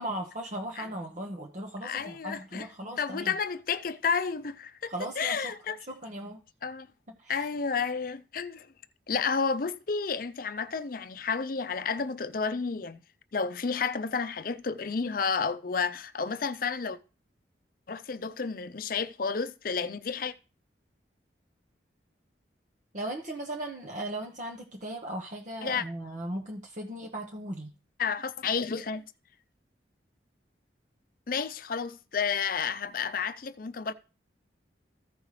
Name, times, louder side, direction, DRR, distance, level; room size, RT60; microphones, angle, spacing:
voice 1, 0.0-3.3 4.9-5.4 5.9-6.4 7.2-7.5 22.9-27.7, right 1 dB, 45° right, 1.0 m, -37 dB
voice 2, 1.8-2.7 3.0-5.8 6.6-6.9 7.3-8.7 9.1-13.0 13.3-17.0 17.9-20.3 25.6-25.8 28.0-29.0 31.3-33.9, left 5 dB, 50° left, 0.6 m, -31 dB
14.5 x 5.4 x 3.2 m
head